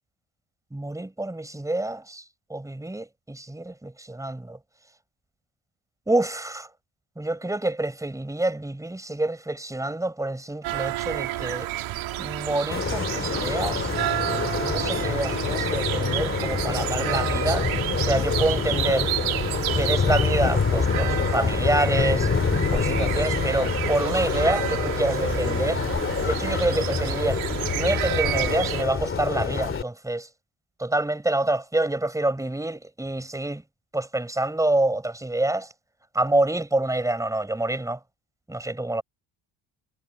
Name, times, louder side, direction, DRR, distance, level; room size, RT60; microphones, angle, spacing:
voice 1, 0.7-2.2 2.5-4.6 6.1-6.7 7.2-11.7 12.2-13.9 14.6-17.7 18.0-19.1 19.7-22.3 22.7-25.8 26.2-27.4 27.7-30.3 30.8-33.6 33.9-35.7 36.1-38.0 38.5-39.0, right 2 dB, 5° right, 5.4 m, -27 dB
sound 1, 10.6-28.8, right 15 dB, 80° right, 2.9 m, -30 dB
sound 2, 12.7-29.8, left 5 dB, 25° left, 2.7 m, -26 dB
cardioid pair, 140°, 47 cm